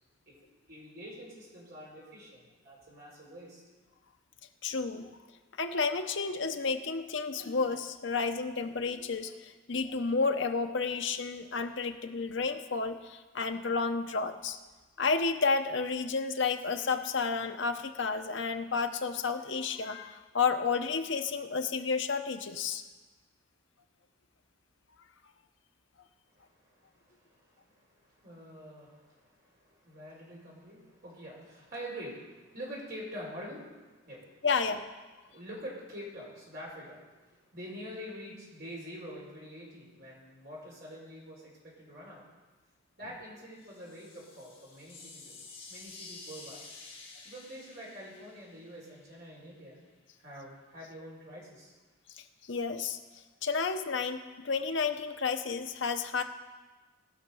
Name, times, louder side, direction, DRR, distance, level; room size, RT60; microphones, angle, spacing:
voice 1, 0.3-3.6 26.3-34.5 35.2-42.2 43.0-45.4 45.7-46.6 47.2-49.8 50.2-51.7, equal, 45° right, -4 dB, 4.1 m, -46 dB
voice 2, 4.6-5.1 5.6-14.6 15.0-22.8 34.4-34.8 52.5-53.0 53.4-54.2 54.4-56.2, left 4 dB, 55° left, 7 dB, 0.8 m, -31 dB
sound 1, 43.5-49.4, left 3 dB, 25° left, 2.6 m, -50 dB
18.5 x 6.3 x 5.5 m, 1.3 s
head